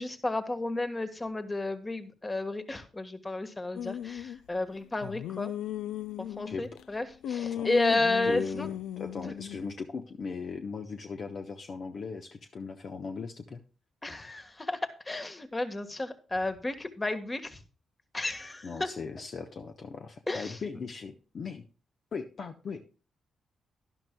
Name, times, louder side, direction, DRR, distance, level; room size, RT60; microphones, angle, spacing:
voice 1, 0.0-5.5 6.2-8.7 14.0-17.6 18.1-18.9 20.3-20.6, left 2 dB, 25° left, 9 dB, 1.5 m, -32 dB
sound 1, 3.8-4.4 5.0-6.8 7.2-9.8, left 10 dB, 80° left, 0.4 m, -36 dB
voice 2, 7.5-8.0 8.2-8.7 9.0-13.6 18.6-21.6 22.1-22.8, left 5 dB, 55° left, 6 dB, 0.9 m, -38 dB
11.5 x 11.0 x 2.3 m, 0.35 s
supercardioid pair, 55°, 0 cm